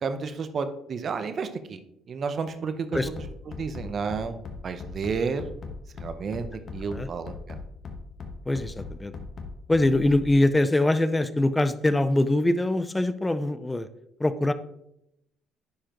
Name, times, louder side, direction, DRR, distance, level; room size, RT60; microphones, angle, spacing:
voice 1, 0.0-1.8 2.1-3.0 3.6-5.5 6.0-7.6, right 5 dB, 45° right, 9 dB, 0.7 m, -31 dB
Bass drum, 2.9-10.3, left 4 dB, 45° left, 1.2 m, -38 dB
voice 2, 8.5-9.1 9.7-13.9 14.2-14.5, left 1 dB, 15° left, 13 dB, 0.5 m, -23 dB
10.0 x 4.8 x 3.0 m, 0.81 s
supercardioid pair, 85°, 0 cm